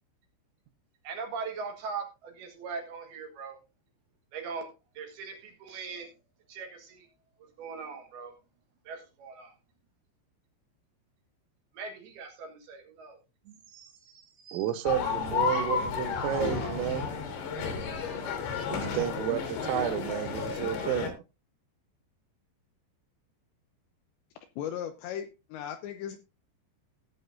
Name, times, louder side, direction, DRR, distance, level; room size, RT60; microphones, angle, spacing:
voice 1, 1.0-3.6 4.3-6.1 6.5-7.1 7.4-8.4 8.8-9.5 11.7-13.2 13.4-14.7, right 5 dB, 60° right, 2.9 m, -41 dB
voice 2, 14.5-17.1 18.7-21.2, right 11 dB, 90° right, 3.5 m, -31 dB
sound 1, 14.9-21.1, left 5 dB, 60° left, 3.5 m, -32 dB
voice 3, 24.6-26.2, left 9 dB, 80° left, 2.7 m, -37 dB
16.5 x 7.9 x 2.6 m
omnidirectional pair, 5.8 m